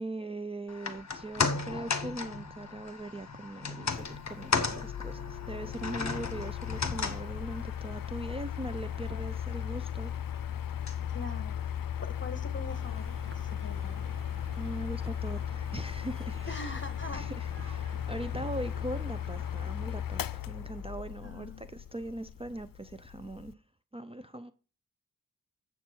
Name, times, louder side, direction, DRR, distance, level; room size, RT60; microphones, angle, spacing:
voice 1, 0.0-10.1 14.6-16.7 17.1-23.6 23.9-24.5, right 1 dB, 15° right, 0.5 m, -40 dB
sound 1, 0.7-13.1 13.4-13.5, left 4 dB, 55° left, 1.1 m, -36 dB
Mechanical fan, 3.9-23.5, left 10 dB, 85° left, 0.5 m, -37 dB
voice 2, 11.1-11.6 12.0-14.0 16.5-17.3 21.2-21.6, left 2 dB, 35° left, 1.5 m, -42 dB
sound 2, 12.7-19.7, right 2 dB, 40° right, 1.2 m, -49 dB
8.5 x 7.3 x 4.5 m
wide cardioid pair, 100°, 33 cm